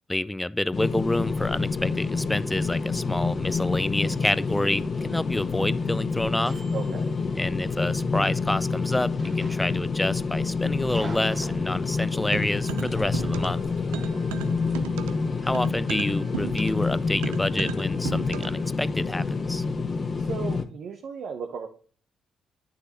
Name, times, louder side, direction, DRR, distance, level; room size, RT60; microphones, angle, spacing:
voice 1, 0.1-6.5 7.3-13.6 15.4-19.6, left 1 dB, 10° left, 0.4 m, -28 dB
sound 1, 0.7-20.6, left 4 dB, 40° left, 0.9 m, -28 dB
sound 2, 2.7-7.7 8.9-10.2 10.5-12.2 12.9-13.5, right 4 dB, 50° right, 1.5 m, -48 dB
voice 2, 6.7-7.1 13.9-14.3 20.2-21.7, right 6 dB, 65° right, 0.9 m, -36 dB
sound 3, 12.3-13.6 13.9-18.7, right 11 dB, 85° right, 0.5 m, -36 dB
9.3 x 6.6 x 2.9 m
supercardioid pair, 55°, 0 cm